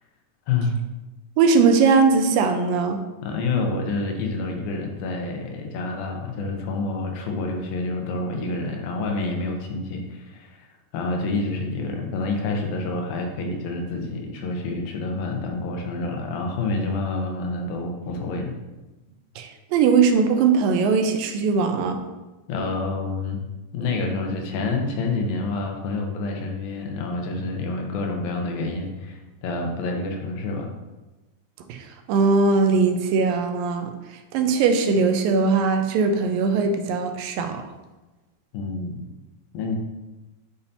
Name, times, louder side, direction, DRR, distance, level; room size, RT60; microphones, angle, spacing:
voice 1, 0.5-0.8 3.2-10.7 10.9-18.5 22.5-23.4 23.7-30.7 38.5-39.0 39.5-39.8, left 3 dB, 90° left, 2 dB, 2.8 m, -28 dB
voice 2, 1.4-3.0 19.4-22.0 31.7-31.8 32.1-33.9 34.3-37.6, right 4 dB, 85° right, 6 dB, 2.4 m, -20 dB
8.6 x 5.6 x 2.8 m, 1.1 s
omnidirectional pair, 4.0 m